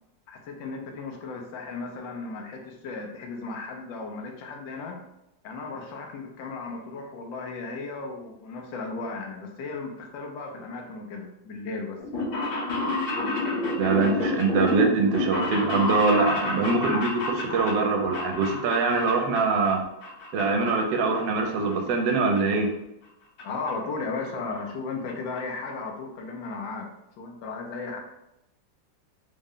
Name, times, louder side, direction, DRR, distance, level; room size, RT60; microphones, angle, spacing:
voice 1, 0.3-5.0 5.4-12.3 23.4-28.0, left 3 dB, 90° left, 2 dB, 1.4 m, -35 dB
sound 1, 12.0-19.7 20.0-20.7 21.0-22.1 22.4-22.5 23.4-23.5 23.7-23.8 24.0-24.1 24.4-24.7 25.1-25.2 25.4-25.5, left 2 dB, 70° left, 1.7 m, -29 dB
voice 2, 13.8-19.8 20.3-22.7, right 4 dB, 80° right, 3 dB, 1.3 m, -23 dB
3.7 x 2.1 x 3.6 m, 0.88 s
omnidirectional pair, 2.0 m